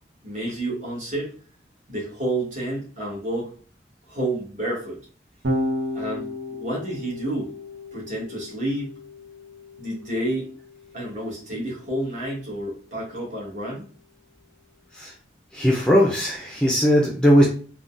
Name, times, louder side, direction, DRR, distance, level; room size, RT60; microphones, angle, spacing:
voice 1, 0.2-1.3 1.9-3.5 4.1-5.0 5.9-7.5 7.9-8.9 9.8-10.5 10.9-13.9, right 1 dB, 45° right, -4 dB, 1.3 m, -29 dB
Electric guitar / Bass guitar, 5.4-11.8, left 1 dB, 85° right, 0.7 m, -33 dB
voice 2, 15.5-17.4, equal, 5° left, -2 dB, 0.4 m, -19 dB
3.7 x 2.2 x 2.5 m, 0.42 s
head